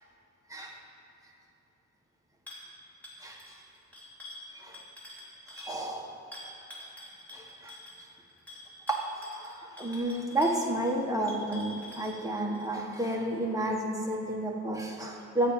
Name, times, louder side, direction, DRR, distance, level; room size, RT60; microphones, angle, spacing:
sound 1, 2.5-2.7 3.0-5.8 6.3-12.7, left 1 dB, 5° left, 2.9 m, -47 dB
voice 1, 5.6-6.1 8.9-9.0 9.8-15.5, right 1 dB, 10° right, -1 dB, 1.5 m, -30 dB
13.0 x 5.7 x 9.0 m, 2.7 s
wide cardioid pair, 100°, 30 cm